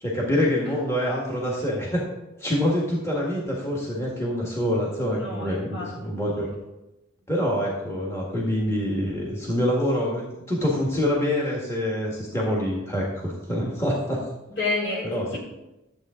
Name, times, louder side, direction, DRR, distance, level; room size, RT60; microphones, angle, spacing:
voice 1, 0.0-2.0 2.4-6.5 7.3-14.3 15.0-15.4, equal, 15° left, -4 dB, 1.7 m, -26 dB
voice 2, 5.1-6.1 14.5-15.4, left 2 dB, 60° left, -4 dB, 3.8 m, -30 dB
12.5 x 7.8 x 3.8 m, 0.97 s
head